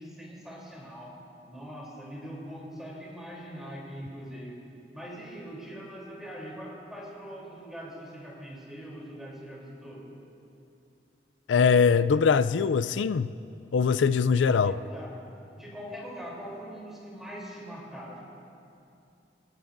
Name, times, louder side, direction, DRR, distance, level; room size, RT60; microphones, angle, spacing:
voice 1, 0.0-4.6 4.9-10.1 14.4-15.2 15.6-18.2, equal, ahead, 3.3 m, -42 dB
voice 2, 11.5-13.3 13.7-14.8, left 6 dB, 85° left, 0.4 m, -22 dB
24.5 x 15.5 x 2.6 m
head